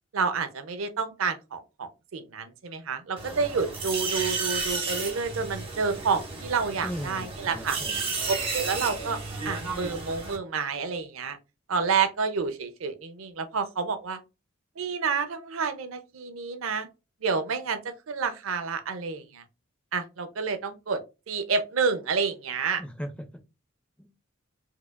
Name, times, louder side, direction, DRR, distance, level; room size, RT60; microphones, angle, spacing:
voice 1, 0.1-7.8 8.5-9.2 9.4-11.4 11.7-14.2 14.8-16.9 17.2-19.4 19.9-21.0 21.3-22.8, right 5 dB, 85° right, 0.6 m, -29 dB
sound 1, 3.2-10.4, right 4 dB, 30° right, 0.9 m, -33 dB
voice 2, 6.8-8.1 22.8-23.3 24.0-24.1, equal, 5° left, 0.4 m, -37 dB
4.6 x 2.4 x 2.2 m
head